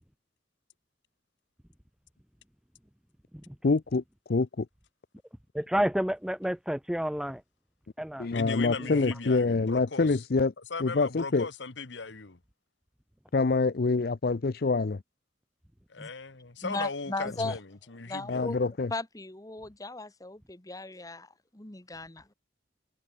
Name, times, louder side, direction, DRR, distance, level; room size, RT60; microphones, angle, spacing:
voice 1, 3.6-4.7 8.2-10.5 10.8-11.5 13.3-15.0 18.3-18.9, left 3 dB, 55° left, 0.6 m, -26 dB
voice 2, 5.5-7.4 8.0-8.3 8.9-9.1, equal, 5° right, 0.5 m, -30 dB
voice 3, 8.3-10.1 10.7-12.4 15.9-17.6 17.9-18.6, left 4 dB, 80° left, 1.4 m, -37 dB
voice 4, 16.6-17.6 18.1-18.6 18.9-22.3, left 2 dB, 20° left, 1.4 m, -37 dB
head